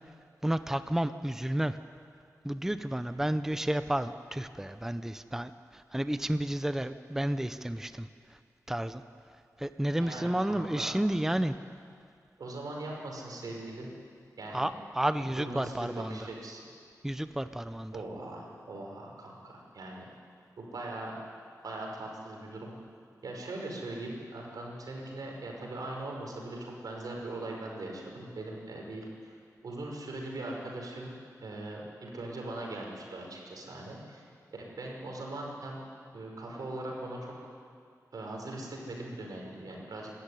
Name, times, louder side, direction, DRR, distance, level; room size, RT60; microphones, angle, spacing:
voice 1, 0.4-1.8 2.4-8.1 8.7-9.0 9.6-11.5 14.5-16.3 17.0-17.9, right 1 dB, 5° right, 11 dB, 0.6 m, -31 dB
voice 2, 10.0-10.9 12.4-13.9 14.4-14.7 15.2-16.6 17.9-20.1 20.6-21.2 21.6-22.7 23.2-29.1 29.6-31.1 31.4-34.2 34.6-35.8 36.1-37.3 38.1-40.1, right 2 dB, 85° right, -1 dB, 5.3 m, -40 dB
25.5 x 13.5 x 10.0 m, 2.3 s
wide cardioid pair, 110°, 6 cm